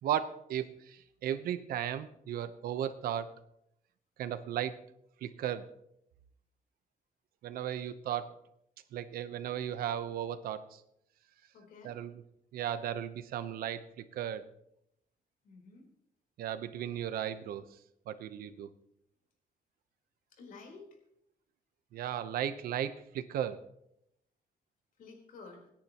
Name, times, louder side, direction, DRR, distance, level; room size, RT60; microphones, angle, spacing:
voice 1, 0.0-3.3 4.2-4.9 5.2-5.7 7.4-8.3 8.9-10.8 11.8-12.1 12.5-14.5 16.4-17.6 18.1-18.7 21.9-23.6, right 10 dB, 85° right, 12 dB, 0.9 m, -35 dB
voice 2, 11.5-12.0 15.4-15.9 20.3-20.9 25.0-25.7, left 4 dB, 70° left, 1 dB, 4.1 m, -51 dB
27.0 x 10.0 x 3.0 m, 0.78 s
cardioid pair, 145°, 15 cm